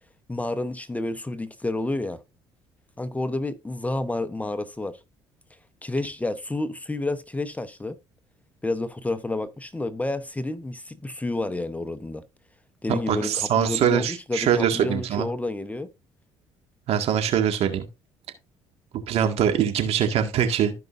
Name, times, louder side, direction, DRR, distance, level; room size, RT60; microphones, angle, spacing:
voice 1, 0.3-2.2 3.0-5.0 5.8-8.0 8.6-12.2 12.8-15.9, left 2 dB, 15° left, 0.9 m, -30 dB
voice 2, 13.1-15.3 16.9-17.9 19.1-20.7, right 9 dB, 65° right, 1.9 m, -23 dB
14.5 x 5.3 x 2.6 m
supercardioid pair, 70°, 11 cm